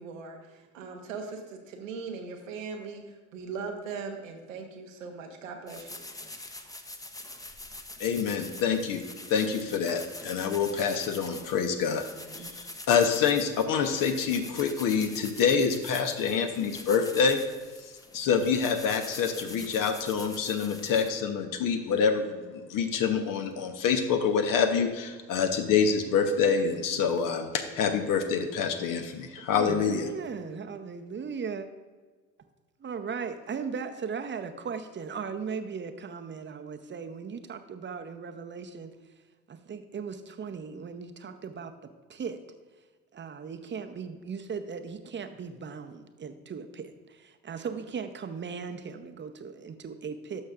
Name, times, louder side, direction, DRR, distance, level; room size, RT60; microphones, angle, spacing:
voice 1, 0.0-6.0, right 5 dB, 80° right, 3 dB, 1.1 m, -39 dB
sound 1, 5.7-21.1, left 2 dB, 10° left, 0.8 m, -44 dB
voice 2, 8.0-9.0 9.3-12.0 12.6-17.4 18.1-30.1, left 6 dB, 55° left, 6 dB, 1.1 m, -26 dB
voice 3, 29.5-31.7 32.8-38.9 39.5-41.7 42.1-42.4 43.1-50.4, right 6 dB, 30° right, 7 dB, 0.8 m, -37 dB
11.5 x 6.3 x 2.5 m, 1.4 s
hypercardioid pair, 55°, 38 cm